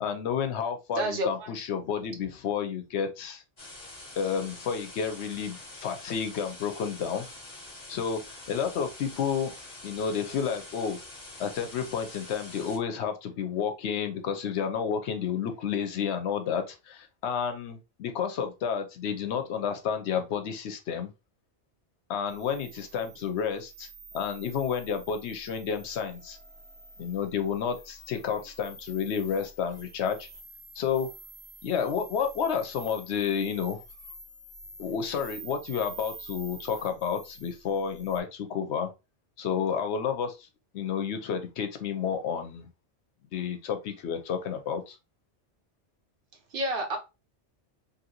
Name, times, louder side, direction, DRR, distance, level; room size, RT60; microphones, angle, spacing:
voice 1, 0.0-3.4 4.2-7.3 7.9-9.6 9.8-11.0 11.4-21.1 22.1-23.9 24.1-26.4 27.0-30.3 30.8-31.1 31.6-33.8 34.8-38.9 39.4-40.5 40.7-42.7 43.3-45.0, left 7 dB, 75° left, 0.9 m, -30 dB
voice 2, 0.9-1.5 46.5-47.0, right 1 dB, 55° right, 0.8 m, -29 dB
sound 1, 3.6-12.8, left 2 dB, 30° left, 0.8 m, -46 dB
Car Stereo Feedback, 22.3-38.2, right 2 dB, 5° left, 0.4 m, -48 dB
2.9 x 2.6 x 2.8 m
omnidirectional pair, 1.2 m